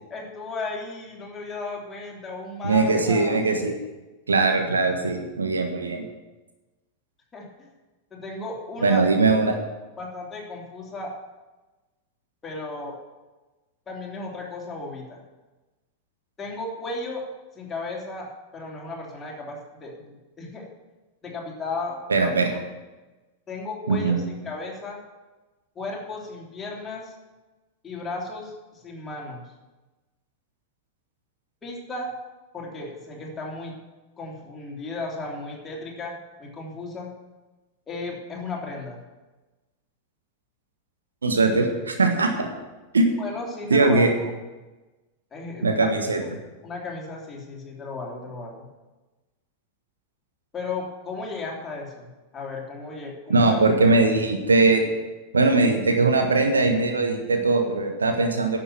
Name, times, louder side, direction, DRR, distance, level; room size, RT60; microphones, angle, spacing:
voice 1, 0.1-3.4 7.3-7.7 8.1-9.0 10.0-11.1 12.4-13.0 13.9-15.2 16.4-17.2 17.5-18.3 18.5-20.7 21.2-22.6 23.5-25.0 25.7-27.1 27.8-29.4 31.6-32.1 32.5-33.8 34.2-36.1 36.4-37.1 37.9-39.0 43.2-44.3 45.3-46.3 46.6-48.7 50.5-53.6, left 3 dB, 20° left, -2 dB, 3.3 m, -35 dB
voice 2, 2.6-3.7 4.3-6.0 8.8-9.6 22.1-22.5 23.9-24.2 41.2-42.5 42.9-43.1 43.7-44.1 45.6-46.2 53.3-54.8 55.3-58.6, right 3 dB, 75° right, 4 dB, 1.5 m, -20 dB
11.0 x 7.2 x 8.7 m, 1.2 s
figure-of-eight pair, 90°, 0 cm